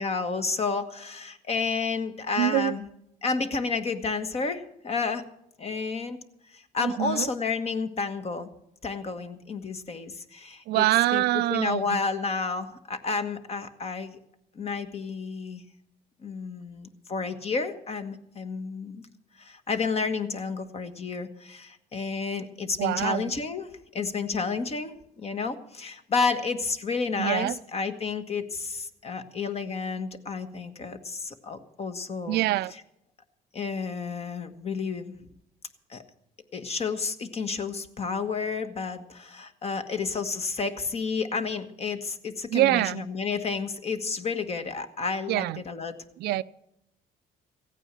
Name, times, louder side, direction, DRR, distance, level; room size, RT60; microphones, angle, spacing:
voice 1, 0.0-2.8 3.2-5.2 5.6-6.2 6.5-8.5 8.8-10.8 11.1-11.2 11.5-14.2 14.5-15.7 16.2-19.0 19.4-32.4 33.5-35.1 35.9-36.0 36.5-45.9, left 4 dB, 40° left, 9 dB, 1.4 m, -31 dB
voice 2, 2.4-2.8 6.8-7.3 10.7-12.0 22.8-23.3 27.2-27.6 32.3-32.7 42.5-43.0 45.3-45.6 46.2-46.4, right 16 dB, 75° right, 16 dB, 0.4 m, -25 dB
16.0 x 9.2 x 7.5 m, 0.81 s
cardioid pair, 110°, 17 cm